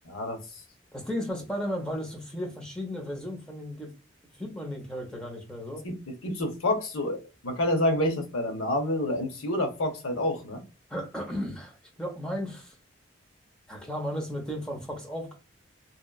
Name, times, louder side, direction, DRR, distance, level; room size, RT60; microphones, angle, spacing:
voice 1, 0.1-0.4 5.8-7.2 7.4-10.6, left 1 dB, 85° left, 0.7 m, -28 dB
voice 2, 0.9-3.9 4.4-5.8 10.9-12.7 13.7-15.3, equal, 5° left, 0.7 m, -34 dB
2.8 x 2.3 x 2.2 m
head